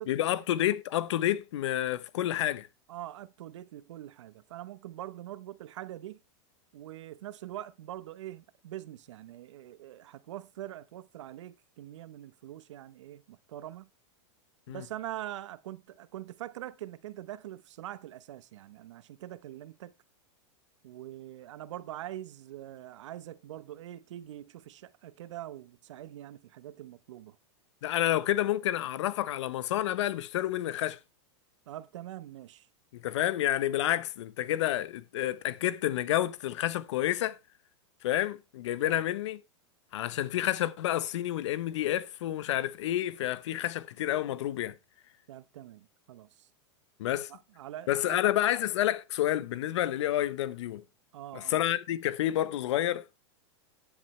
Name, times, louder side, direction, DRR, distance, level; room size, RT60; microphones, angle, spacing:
voice 1, 0.1-2.7 14.7-14.8 27.8-31.0 32.9-37.4 38.0-39.4 39.9-44.7 47.0-47.3 47.9-50.8 51.3-53.0, left 13 dB, 70° left, 1.0 m, -29 dB
voice 2, 2.9-6.2 6.7-13.9 14.7-19.9 20.8-27.4 31.7-32.7 38.8-39.0 45.3-46.5 47.1-48.2 51.1-51.6, right 13 dB, 75° right, 1.0 m, -43 dB
11.0 x 10.5 x 3.3 m
supercardioid pair, 150°, 15 cm